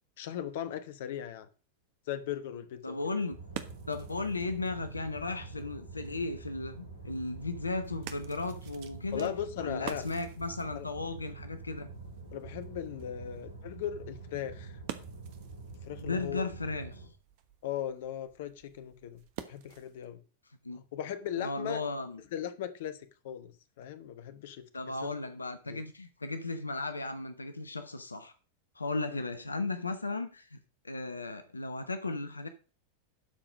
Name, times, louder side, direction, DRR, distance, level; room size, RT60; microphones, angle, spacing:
voice 1, 0.2-1.5 2.1-3.0 9.1-10.1 10.7-10.9 12.3-14.8 15.8-16.5 17.6-20.2 20.7-21.8 22.3-24.7 25.7-25.8 29.1-29.2, left 10 dB, 55° left, 1.0 m, -38 dB
voice 2, 2.8-3.4 3.9-9.3 9.6-11.9 16.0-17.1 20.6-20.8 21.4-22.2 24.7-28.3 28.7-30.6 30.8-32.5, left 3 dB, 80° left, 0.8 m, -35 dB
sound 1, 2.9-20.1, right 11 dB, 50° right, 1.2 m, -50 dB
sound 2, 3.3-17.1, right 4 dB, 80° right, 3.6 m, -46 dB
12.0 x 5.0 x 6.2 m
figure-of-eight pair, 90°, 0 cm